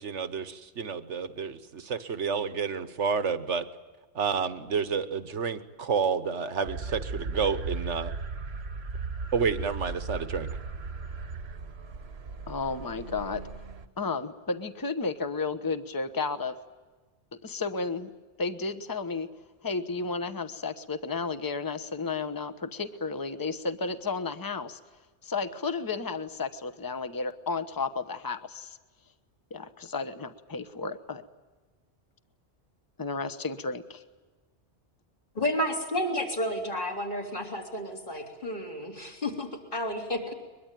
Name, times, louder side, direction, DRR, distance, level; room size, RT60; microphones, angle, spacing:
voice 1, 0.0-3.6 4.1-8.1 9.3-10.5, right 5 dB, 85° right, 11 dB, 1.5 m, -30 dB
sound 1, 6.6-13.9, right 4 dB, 65° right, 1.4 m, -37 dB
voice 2, 12.5-13.4 14.0-16.6 17.4-18.1 18.4-19.3 19.6-24.8 25.2-28.8 29.5-31.2 33.0-34.0, left 4 dB, 20° left, 10 dB, 1.0 m, -32 dB
voice 3, 35.4-40.3, left 1 dB, 45° left, 1 dB, 3.7 m, -31 dB
22.5 x 22.5 x 9.2 m, 1.3 s
omnidirectional pair, 1.2 m